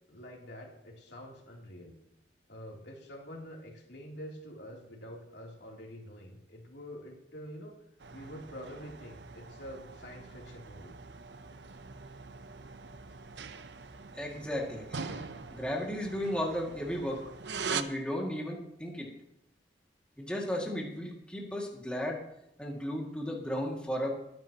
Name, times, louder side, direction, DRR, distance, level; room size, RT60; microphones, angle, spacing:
voice 1, 0.1-1.9 2.5-7.8 8.1-11.0, equal, 75° left, -1 dB, 3.2 m, -46 dB
sound 1, 8.0-17.8, right 5 dB, 75° right, 0.8 m, -42 dB
voice 2, 14.1-15.2 15.5-17.2 17.7-19.1 20.2-22.2 22.6-24.1, equal, 5° left, -2 dB, 2.2 m, -35 dB
22.0 x 10.5 x 3.0 m, 0.80 s
head